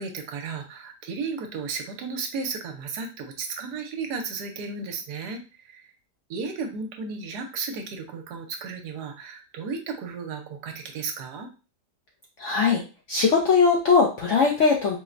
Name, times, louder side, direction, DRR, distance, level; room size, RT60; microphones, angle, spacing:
voice 1, 0.0-5.9 6.3-11.5, right 4 dB, 80° right, 4 dB, 1.2 m, -34 dB
voice 2, 12.4-12.8 13.1-15.0, left 5 dB, 70° left, -1 dB, 0.7 m, -20 dB
4.3 x 2.1 x 2.4 m, 0.33 s
omnidirectional pair, 1.8 m